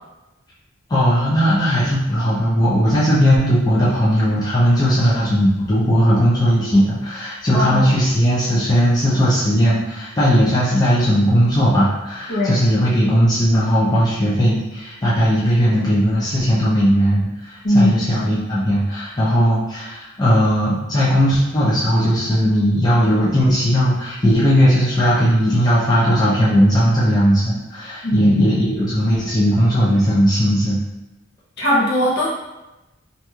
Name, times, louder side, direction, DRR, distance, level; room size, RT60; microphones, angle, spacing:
voice 1, 0.9-30.8, equal, 20° left, -8 dB, 0.5 m, -17 dB
voice 2, 7.5-8.0 12.3-12.5 17.6-18.0 28.0-28.5 31.6-32.3, equal, 55° left, -6 dB, 0.9 m, -18 dB
2.9 x 2.6 x 2.3 m, 0.99 s
head